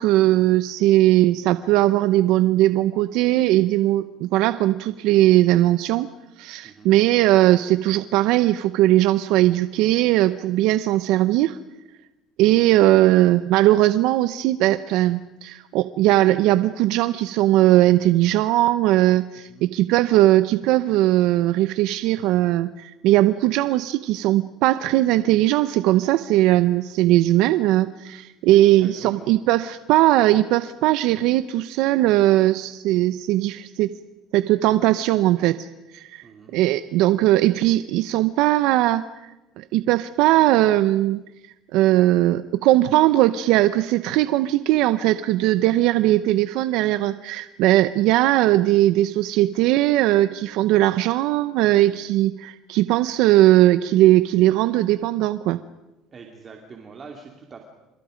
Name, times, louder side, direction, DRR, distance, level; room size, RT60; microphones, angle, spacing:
voice 1, 0.0-6.1 6.4-11.6 12.4-33.9 34.3-35.7 35.9-36.2 36.5-39.3 39.6-41.2 41.7-55.6, right 15 dB, 70° right, 13 dB, 0.8 m, -19 dB
voice 2, 28.5-29.3 36.2-36.6 56.1-57.6, right 5 dB, 30° right, 2 dB, 2.8 m, -43 dB
29.5 x 28.0 x 5.2 m, 1.0 s
cardioid pair, 135°, 0 cm